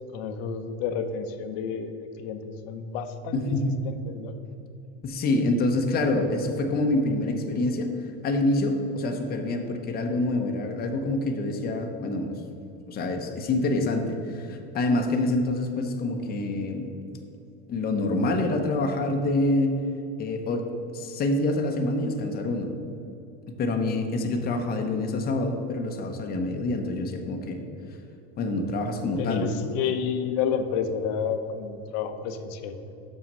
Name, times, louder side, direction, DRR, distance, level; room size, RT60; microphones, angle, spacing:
voice 1, 0.1-3.6 3.8-4.3 29.2-32.8, left 6 dB, 65° left, 8 dB, 0.8 m, -30 dB
voice 2, 3.3-3.7 5.0-12.4 12.9-17.0 17.7-19.8 20.2-22.7 23.6-27.6 28.4-29.5, left 2 dB, 30° left, 4 dB, 0.8 m, -26 dB
6.5 x 5.8 x 5.4 m, 2.8 s
supercardioid pair, 120°, 34 cm